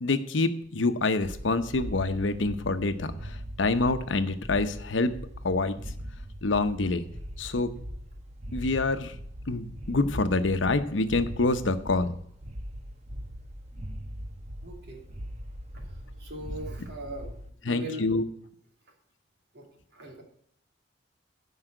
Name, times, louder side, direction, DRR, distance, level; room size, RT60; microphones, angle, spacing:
voice 1, 0.0-5.1 5.4-5.8 6.4-7.0 7.4-7.7 8.5-9.2 9.5-12.1 17.6-18.2, left 3 dB, 85° left, 10 dB, 0.9 m, -26 dB
sound 1, 1.2-17.5, equal, 35° right, 0.9 m, -41 dB
voice 2, 14.6-15.0 16.2-17.3 17.6-18.1 19.5-19.7 19.9-20.2, right 1 dB, 60° right, 1 dB, 2.8 m, -39 dB
9.8 x 5.6 x 7.9 m, 0.66 s
head